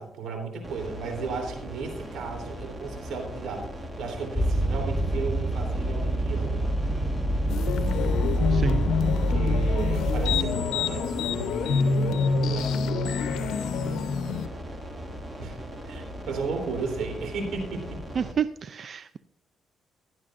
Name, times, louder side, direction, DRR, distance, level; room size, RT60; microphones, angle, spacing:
voice 1, 0.0-3.7 4.0-6.6 9.0-12.8 15.4-15.6 15.9-18.0, right 4 dB, 80° right, 3 dB, 3.4 m, -35 dB
sound 1, 0.6-18.3, right 1 dB, 20° right, 2.3 m, -39 dB
sound 2, 4.3-10.4, right 1 dB, 5° left, 1.0 m, -26 dB
sound 3, 7.5-14.5, left 5 dB, 80° left, 0.8 m, -27 dB
voice 2, 8.5-8.8 18.2-19.2, right 7 dB, 50° right, 13 dB, 0.4 m, -29 dB
16.0 x 11.5 x 2.6 m, 0.74 s
cardioid pair, 90°, 0 cm